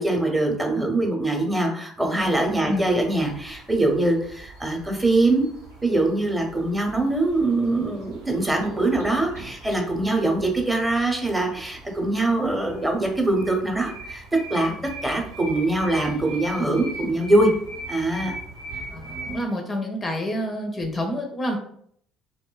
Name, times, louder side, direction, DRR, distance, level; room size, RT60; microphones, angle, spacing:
voice 1, 0.0-5.5 5.8-14.2 14.5-14.7 15.0-17.5 17.9-18.3, right 2 dB, 10° right, 2 dB, 0.7 m, -23 dB
sound 1, 2.2-19.4, right 2 dB, 80° right, 0.6 m, -41 dB
voice 2, 18.9-21.6, left 1 dB, 30° left, 2 dB, 0.4 m, -28 dB
2.6 x 2.1 x 2.2 m, 0.65 s
hypercardioid pair, 55°, 0 cm